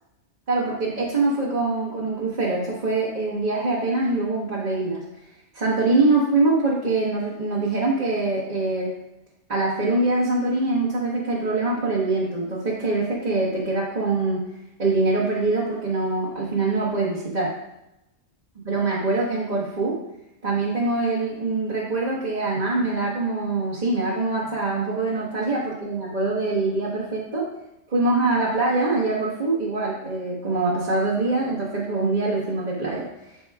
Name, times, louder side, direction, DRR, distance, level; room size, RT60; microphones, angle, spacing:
voice 1, 0.5-5.0 5.5-8.9 9.5-14.4 14.8-17.5 18.6-20.0 20.4-27.5 27.9-33.1, right 3 dB, 35° right, -8 dB, 1.3 m, -24 dB
13.0 x 4.4 x 2.3 m, 0.89 s
omnidirectional pair, 1.3 m